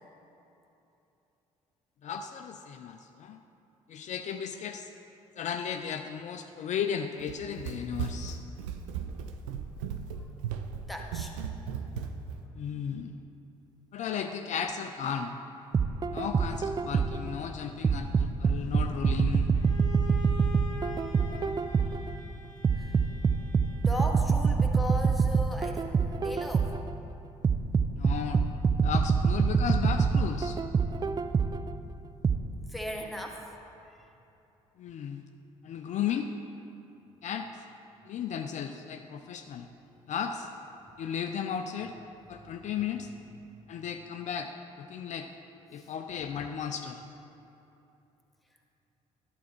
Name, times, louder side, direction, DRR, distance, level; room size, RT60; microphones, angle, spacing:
voice 1, 2.0-3.4 3.9-4.9 5.4-8.4 12.5-13.2 13.9-15.4 16.1-19.5 27.9-28.4 28.8-30.6 34.8-35.2 35.6-36.3 37.2-37.5 38.0-39.7 40.1-40.5 41.0-41.9 42.3-43.1 43.7-44.5 44.8-45.3 45.7-47.1, left 7 dB, 45° left, 6 dB, 0.5 m, -35 dB
Run, 7.2-12.4, right 7 dB, 75° right, 0.5 m, -37 dB
voice 2, 10.9-11.3 21.9-22.0 22.2-22.4 22.7-23.2 23.8-26.7 32.7-33.5 33.9-34.0 43.5-43.6, left 1 dB, ahead, 1 dB, 1.3 m, -38 dB
sound 1, 15.7-17.3 17.8-22.1 22.6-26.9 27.4-31.7 32.2-32.4, right 5 dB, 25° right, 0.4 m, -25 dB
Bowed string instrument, 19.5-24.4, equal, 90° left, 0.6 m, -45 dB
11.5 x 7.2 x 4.6 m, 2.9 s
figure-of-eight pair, 50°, 17 cm